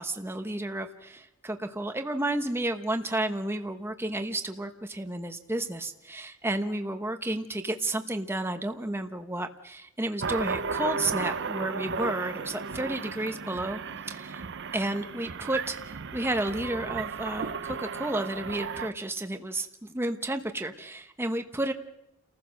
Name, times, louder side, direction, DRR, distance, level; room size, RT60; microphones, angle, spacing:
voice 1, 0.0-13.8 14.1-14.5 14.7-21.7, right 1 dB, 10° right, 6 dB, 0.9 m, -32 dB
sound 1, 10.2-18.9, right 5 dB, 55° right, 0.7 m, -34 dB
30.0 x 15.0 x 6.4 m, 0.87 s
head